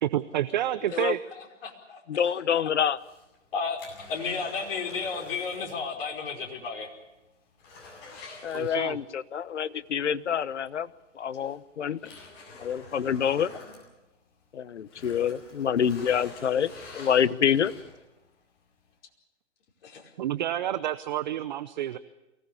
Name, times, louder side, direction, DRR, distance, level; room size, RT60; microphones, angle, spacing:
voice 1, 0.0-1.2 8.5-9.0 20.2-22.0, right 12 dB, 40° right, 15 dB, 0.7 m, -29 dB
voice 2, 1.4-2.0 2.3-2.4 3.5-6.9 8.1-8.2 19.8-20.1, left 5 dB, 50° left, 1 dB, 5.1 m, -33 dB
voice 3, 2.1-3.0 8.4-10.9 11.1-12.0 12.6-13.5 14.5-17.7, left 8 dB, 65° left, 16 dB, 1.1 m, -27 dB
sound 1, 2.9-5.8 6.1-6.2 6.7-6.8 7.1-9.2 10.6-10.7 11.3-14.5 14.8-18.1 18.7-18.8, left 3 dB, 30° left, 7.9 m, -47 dB
23.5 x 17.5 x 8.6 m, 1.0 s
hypercardioid pair, 135°, 37 cm